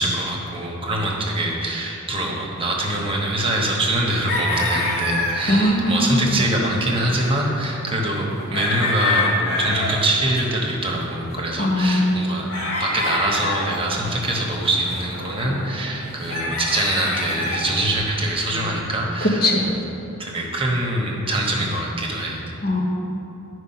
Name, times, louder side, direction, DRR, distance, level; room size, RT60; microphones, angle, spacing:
voice 1, 0.0-12.4 12.8-19.8 20.2-22.5, right 1 dB, 25° right, -1 dB, 1.1 m, -24 dB
sound 1, 4.3-5.4 5.8-5.9 6.1-6.2 6.4-6.6 6.9-10.6 10.9-17.7, left 2 dB, 60° left, 2.2 m, -27 dB
voice 2, 5.5-6.4 11.6-12.2 19.4-19.6 22.6-22.8, left 1 dB, 45° left, 0 dB, 1.0 m, -20 dB
10.0 x 4.8 x 5.7 m, 3.0 s
head